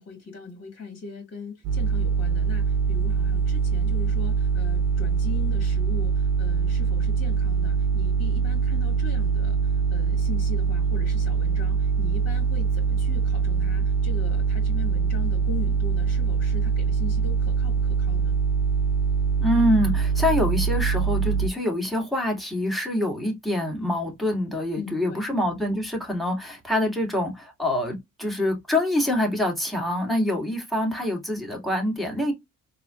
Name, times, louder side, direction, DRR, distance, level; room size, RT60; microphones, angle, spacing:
voice 1, 0.0-18.4 24.8-25.2, left 5 dB, 45° left, 2.2 m, -40 dB
sound 1, 1.6-21.5, right 5 dB, 65° right, 0.8 m, -23 dB
voice 2, 19.4-32.3, left 1 dB, ahead, 2.1 m, -25 dB
4.0 x 2.9 x 2.4 m
cardioid pair, 90°, 30 cm